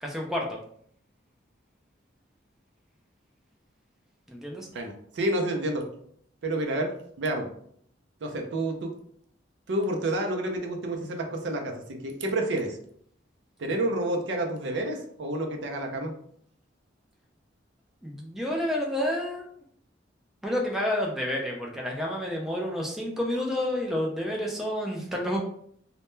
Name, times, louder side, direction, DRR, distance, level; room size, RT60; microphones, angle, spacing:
voice 1, 0.0-0.6 4.3-4.7 18.0-19.4 20.4-25.4, left 1 dB, ahead, -1 dB, 0.3 m, -29 dB
voice 2, 4.7-5.9 6.4-6.9 7.2-7.5 8.2-8.9 9.7-12.8 13.6-16.1, right 1 dB, 65° right, 3 dB, 0.4 m, -29 dB
2.1 x 2.1 x 3.0 m, 0.64 s
head